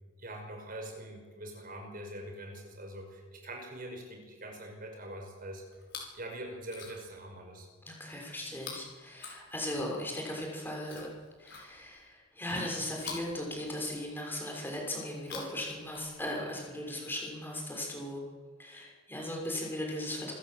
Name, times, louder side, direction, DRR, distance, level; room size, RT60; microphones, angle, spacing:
voice 1, 0.2-5.6 6.1-7.7, right 1 dB, 40° right, 3 dB, 5.6 m, -43 dB
Chewing mastication, 5.7-6.2 6.6-7.2 8.5-9.9 10.8-12.1 12.9-14.2 15.1-16.5 17.4-17.5, left 5 dB, 55° left, 6.7 m, -47 dB
voice 2, 7.9-11.1 11.4-18.2 18.6-20.3, left 1 dB, 10° left, -1 dB, 6.5 m, -37 dB
28.0 x 14.5 x 8.1 m, 1.5 s
head